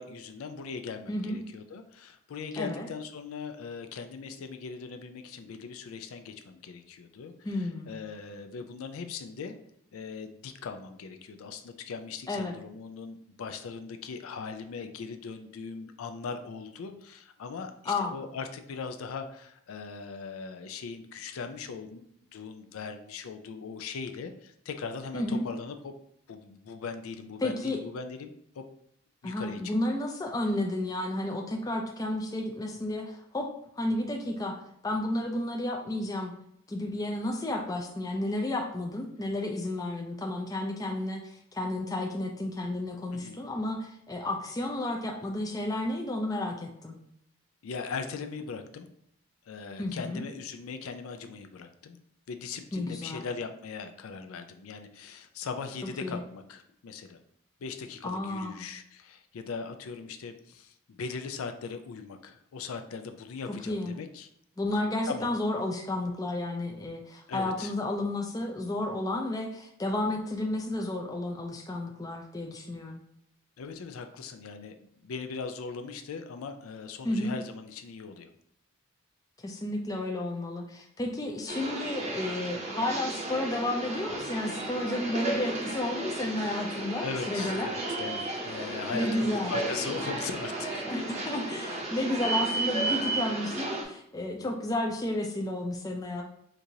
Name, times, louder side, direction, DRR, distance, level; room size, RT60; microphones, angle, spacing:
voice 1, 0.0-9.6 9.9-22.0 22.3-25.9 26.3-28.6 29.2-29.6 43.1-43.4 47.6-48.9 49.5-52.0 52.3-57.2 57.6-64.3 65.1-65.4 67.3-67.7 73.6-78.3 87.0-90.9, left 5 dB, 85° left, 7 dB, 0.4 m, -39 dB
voice 2, 2.6-2.9 7.4-7.9 12.3-12.6 17.9-18.2 25.1-25.4 27.4-27.8 29.2-33.5 33.8-36.3 36.7-47.0 49.8-50.2 52.7-53.2 56.0-56.2 58.0-58.6 63.7-64.0 64.6-73.0 77.0-77.3 79.4-87.7 88.9-89.6 90.9-96.2, left 1 dB, 15° left, 2 dB, 0.4 m, -32 dB
sound 1, 81.5-93.8, right 2 dB, 30° right, 0.6 m, -33 dB
4.5 x 2.5 x 2.7 m, 0.73 s
head